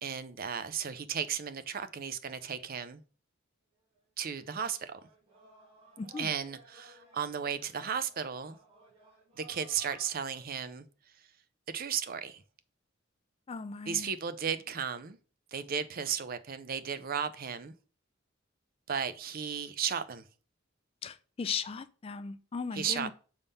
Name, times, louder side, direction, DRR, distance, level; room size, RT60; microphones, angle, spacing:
voice 1, 0.0-3.0 4.2-5.0 6.2-8.6 9.4-10.8 11.7-12.4 13.9-15.2 15.5-17.7 18.9-20.2 22.7-23.1, right 7 dB, 45° right, 0.5 m, -35 dB
sound 1, 3.9-4.0 4.3-10.6, right 2 dB, 30° right, 2.1 m, -58 dB
voice 2, 6.0-6.3 13.5-14.1 21.0-23.1, left 5 dB, 30° left, 0.3 m, -37 dB
6.9 x 3.6 x 5.4 m
head